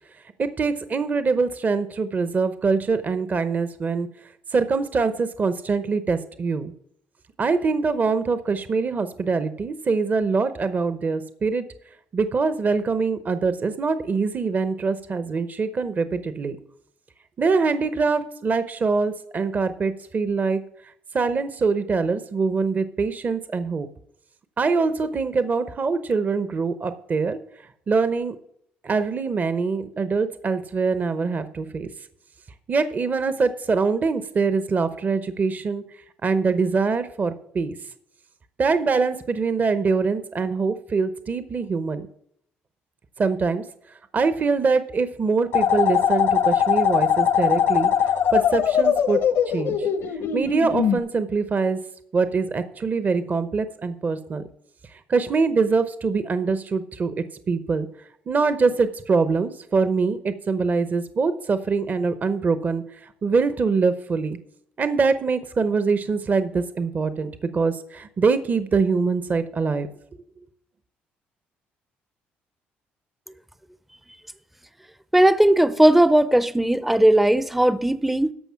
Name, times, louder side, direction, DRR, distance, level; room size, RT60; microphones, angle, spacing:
voice 1, 0.4-4.1 4.5-6.7 7.4-11.6 12.1-16.6 17.4-20.6 21.1-23.9 24.6-27.4 27.9-28.4 28.8-31.9 32.7-35.8 36.2-37.8 38.6-42.1 43.2-43.6 44.1-47.9 48.3-49.2 49.5-49.9 50.3-51.8 52.1-54.4 55.1-57.9 58.3-62.8 63.2-64.4 64.8-69.9, right 4 dB, 40° right, 0.8 m, -23 dB
sound 1, 45.5-51.0, left 8 dB, 70° left, 0.9 m, -21 dB
voice 2, 75.1-78.3, right 1 dB, 5° right, 0.5 m, -17 dB
13.5 x 5.5 x 5.8 m
supercardioid pair, 65°, 4 cm